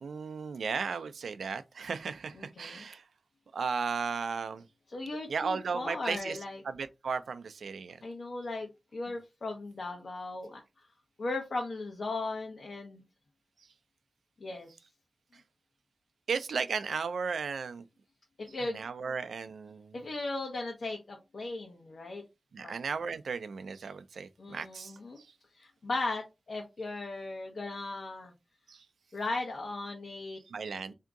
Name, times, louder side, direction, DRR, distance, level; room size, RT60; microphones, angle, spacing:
voice 1, 0.0-3.0 3.5-4.6 5.3-6.4 6.6-8.0 16.3-17.8 18.7-20.0 22.5-24.9 28.7-28.8 30.5-30.9, right 5 dB, 90° right, 0.4 m, -35 dB
voice 2, 2.3-2.9 4.9-6.6 8.0-10.6 11.2-13.0 14.4-14.7 18.4-18.8 19.9-22.2 22.6-22.7 24.4-25.2 25.5-28.3 29.1-30.4 30.7-30.9, left 2 dB, 60° left, 0.9 m, -37 dB
3.5 x 2.8 x 3.6 m
wide cardioid pair, 120°, 0 cm